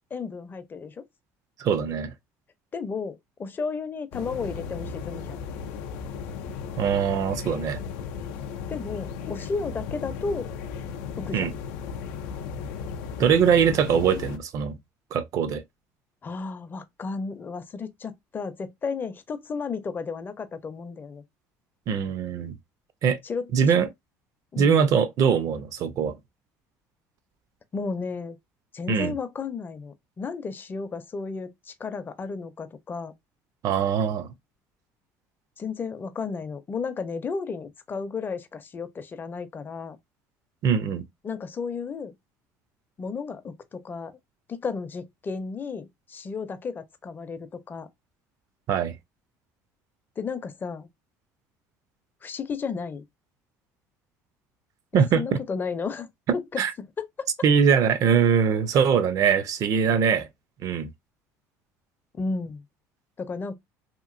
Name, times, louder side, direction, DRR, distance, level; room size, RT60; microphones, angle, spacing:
voice 1, 0.1-1.1 2.7-5.5 8.7-10.5 11.2-11.5 16.2-21.2 23.2-23.5 24.5-24.8 27.7-28.4 28.7-33.1 35.6-40.0 41.2-42.1 43.0-44.2 44.5-47.9 50.2-50.9 52.2-53.0 54.9-56.1 56.3-57.3 62.1-62.6 63.2-63.6, left 4 dB, 30° left, 0.5 m, -33 dB
voice 2, 1.6-2.1 6.8-7.8 11.3-11.5 13.2-14.8 15.1-15.6 21.9-22.6 23.0-23.2 23.5-23.9 24.6-26.1 28.9-29.1 33.6-34.3 40.6-41.0 48.7-48.9 54.9-55.2 56.6-56.7 57.4-60.3 60.6-60.9, right 7 dB, 55° right, 0.5 m, -22 dB
sound 1, 4.1-14.4, left 6 dB, 85° left, 0.4 m, -35 dB
2.9 x 2.6 x 2.5 m
supercardioid pair, 90°, 7 cm